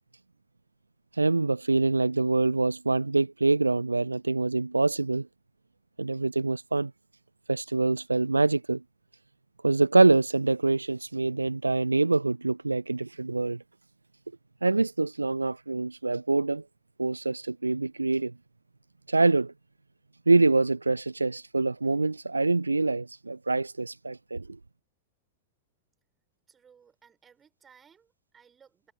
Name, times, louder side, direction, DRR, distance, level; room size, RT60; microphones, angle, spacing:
voice 1, 1.2-5.3 6.0-6.9 7.5-8.8 9.6-13.6 14.6-16.6 17.0-18.3 19.1-19.5 20.3-24.6, right 3 dB, 80° right, 0.4 m, -25 dB
voice 2, 26.5-28.9, right 7 dB, 20° right, 7.1 m, -59 dB
figure-of-eight pair, 90°, 0 cm